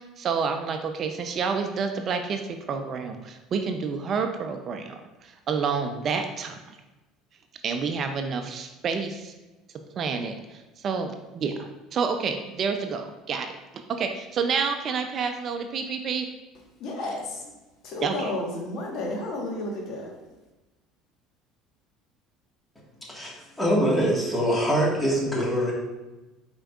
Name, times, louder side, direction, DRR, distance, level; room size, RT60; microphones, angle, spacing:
voice 1, 0.0-6.6 7.6-9.3 10.0-13.5 13.9-16.3 18.0-18.3, right 5 dB, 45° right, 6 dB, 0.5 m, -29 dB
voice 2, 16.8-17.5 17.8-20.1, left 2 dB, 60° left, -1 dB, 1.2 m, -32 dB
voice 3, 23.1-25.7, equal, 10° left, -4 dB, 1.5 m, -24 dB
5.0 x 4.4 x 2.4 m, 1.1 s
supercardioid pair, 95°, 0 cm